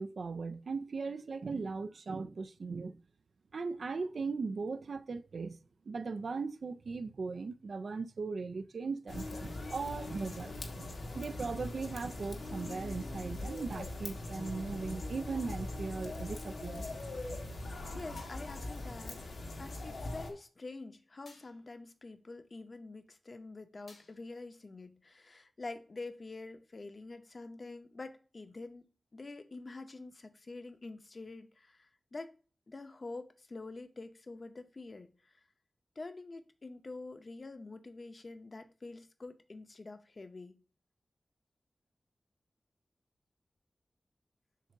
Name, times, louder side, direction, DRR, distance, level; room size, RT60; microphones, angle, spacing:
voice 1, 0.0-3.0 3.5-5.6 5.9-16.8, right 4 dB, 70° right, 0.4 m, -38 dB
sound 1, 9.1-20.3, left 2 dB, 90° left, 1.3 m, -41 dB
voice 2, 17.9-19.2 19.6-28.9 29.1-32.3 32.7-35.3 36.0-40.6, left 3 dB, 45° left, 0.7 m, -46 dB
sound 2, 18.2-18.8 21.3-21.8 23.9-24.5, left 3 dB, 70° left, 1.2 m, -59 dB
7.4 x 2.5 x 5.6 m
wide cardioid pair, 115°, 0 cm